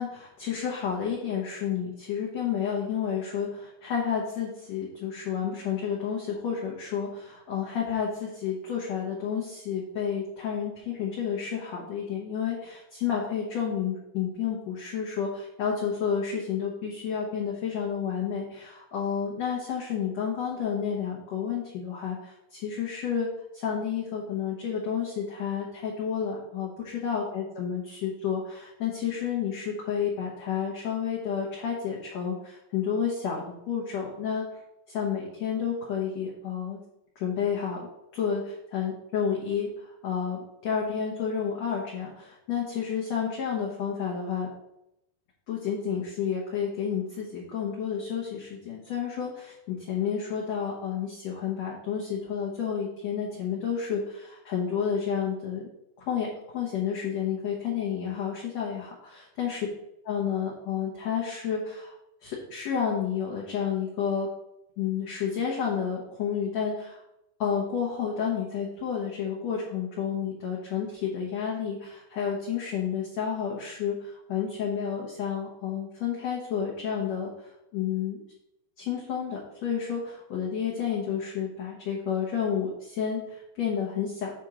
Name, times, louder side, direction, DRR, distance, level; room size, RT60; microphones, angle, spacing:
voice 1, 0.0-23.3 23.5-34.4 34.9-36.8 37.1-37.9 38.1-44.5 45.5-55.7 56.1-56.3 56.5-59.6 60.0-61.9 62.2-64.3 64.8-67.0 67.4-78.2 78.8-84.3, left 7 dB, 70° left, -4 dB, 1.7 m, -30 dB
8.3 x 4.4 x 3.8 m, 0.84 s
omnidirectional pair, 4.4 m